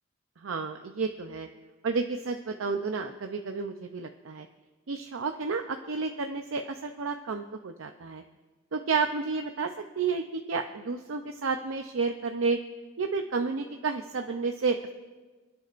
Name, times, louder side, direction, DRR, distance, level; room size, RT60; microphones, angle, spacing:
voice 1, 0.4-1.5 1.8-4.5 4.9-8.2 8.7-12.6 13.0-14.9, right 4 dB, 80° right, 6 dB, 0.6 m, -31 dB
28.0 x 9.3 x 2.5 m, 1.3 s
head